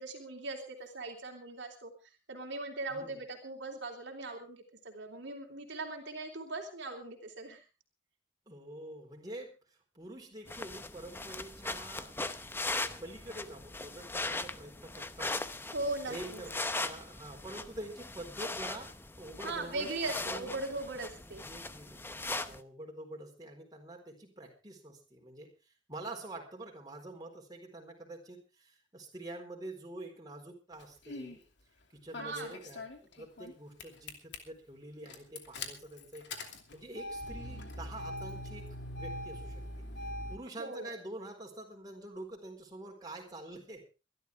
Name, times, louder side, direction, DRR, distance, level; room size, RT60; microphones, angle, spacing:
voice 1, 0.0-1.9 2.3-7.6 15.7-16.4 19.4-21.4 32.2-32.5 40.6-40.9, right 2 dB, 65° right, 1 dB, 3.1 m, -39 dB
voice 2, 8.5-9.6 9.9-12.2 12.5-15.4 16.1-20.6 21.3-25.5 25.9-31.4 31.9-36.3 36.7-38.7 38.9-39.6 40.3-43.8, right 1 dB, 20° right, 1 dB, 4.2 m, -46 dB
sound 1, 10.5-22.6, left 2 dB, 10° left, 0.8 m, -39 dB
Engine starting, 30.8-31.4 32.1-33.5 33.8-34.4 35.1-40.4, left 1 dB, 65° left, 2.8 m, -42 dB
23.5 x 12.5 x 3.5 m, 0.32 s
head